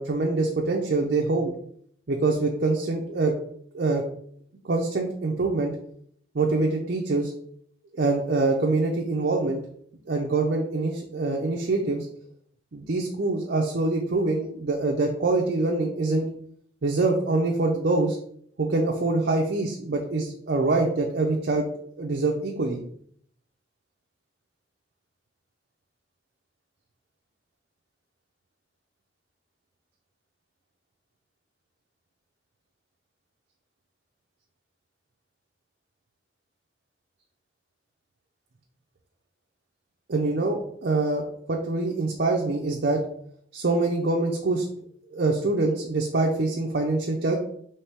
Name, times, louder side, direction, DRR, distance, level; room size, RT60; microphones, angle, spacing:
voice 1, 0.0-1.5 2.1-3.3 3.7-4.0 4.6-5.7 6.3-7.3 8.0-9.6 10.1-12.1 12.7-16.3 16.8-18.2 18.6-21.7 22.0-22.8 40.1-43.0 43.5-44.6 45.1-47.4, right 3 dB, 60° right, 0 dB, 0.6 m, -25 dB
4.3 x 3.2 x 3.4 m, 0.65 s
head